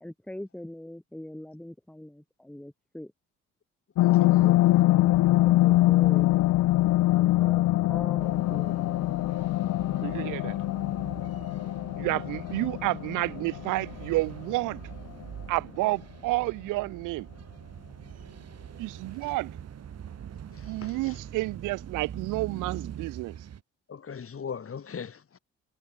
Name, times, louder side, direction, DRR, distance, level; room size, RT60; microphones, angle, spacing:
voice 1, 0.0-3.1 4.2-6.4 7.1-9.1, left 1 dB, 5° left, 1.7 m, -42 dB
sound 1, 4.0-14.8 15.2-15.3, left 16 dB, 70° left, 0.6 m, -24 dB
sound 2, 8.2-23.6, right 9 dB, 55° right, 1.9 m, -44 dB
voice 2, 9.9-10.6 12.0-14.8 15.5-17.3 18.8-19.6 20.7-23.4, right 20 dB, 80° right, 0.5 m, -30 dB
voice 3, 11.9-12.2 18.0-18.3 19.2-19.3 20.5-21.2 23.9-25.4, left 6 dB, 45° left, 4.1 m, -41 dB
supercardioid pair, 75°, 31 cm